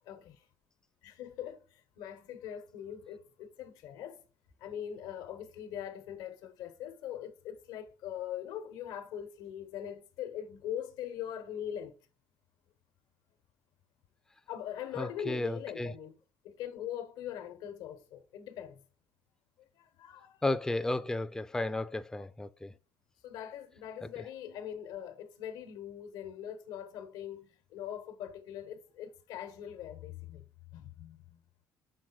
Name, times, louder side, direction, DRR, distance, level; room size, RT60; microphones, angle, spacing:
voice 1, 0.0-0.4 1.0-4.2 4.6-12.0 14.5-16.1 16.4-18.8 19.8-20.4 21.7-21.8 22.1-22.3 23.2-30.4 30.7-31.4, left 10 dB, 85° left, 1.0 m, -42 dB
voice 2, 15.0-15.9 20.4-22.7, left 2 dB, 10° left, 0.5 m, -33 dB
6.3 x 4.0 x 3.9 m
supercardioid pair, 80°, 7 cm